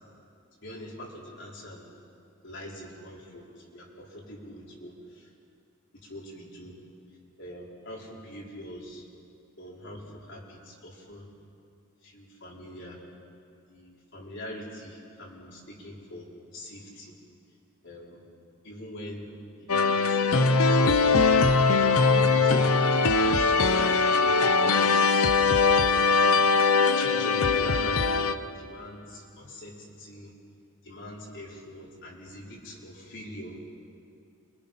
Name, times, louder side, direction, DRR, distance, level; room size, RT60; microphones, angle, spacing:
voice 1, 0.6-1.8 2.4-5.3 6.0-6.8 7.4-9.0 9.6-11.3 12.0-13.0 13.7-17.1 17.8-18.3 18.6-19.3 19.5-21.2 21.8-23.0 24.2-24.9 25.8-26.2 26.9-28.2 28.6-30.3 30.8-33.6, left 1 dB, 60° left, -3 dB, 5.0 m, -43 dB
sound 1, 19.7-28.3, left 4 dB, 90° left, 0.9 m, -21 dB
29.0 x 25.0 x 5.9 m, 2.5 s
head